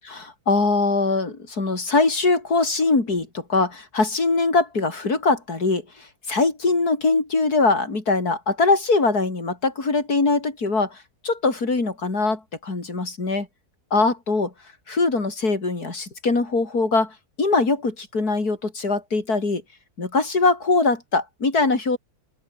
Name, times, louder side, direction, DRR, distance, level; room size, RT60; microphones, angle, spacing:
voice 1, 0.1-11.0 11.2-13.5 13.9-14.5 14.9-19.6 20.0-22.0, left 3 dB, 65° left, 4.6 m, -22 dB
open air
omnidirectional pair, 1.8 m